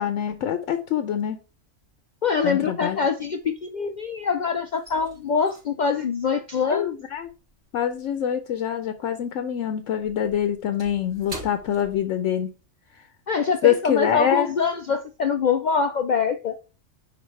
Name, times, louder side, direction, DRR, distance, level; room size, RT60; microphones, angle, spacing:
voice 1, 0.0-1.4 2.4-3.0 6.7-7.3 7.7-12.5 13.6-14.5, left 10 dB, 70° left, 1.0 m, -25 dB
sound 1, 1.5-1.8 2.1-4.1 4.4-9.1 9.3-12.6 13.0-13.1 13.6-13.9, right 1 dB, 75° right, 4.1 m, -45 dB
voice 2, 2.2-6.9 13.3-16.6, left 5 dB, 90° left, 0.4 m, -24 dB
10.5 x 3.9 x 3.2 m
omnidirectional pair, 1.4 m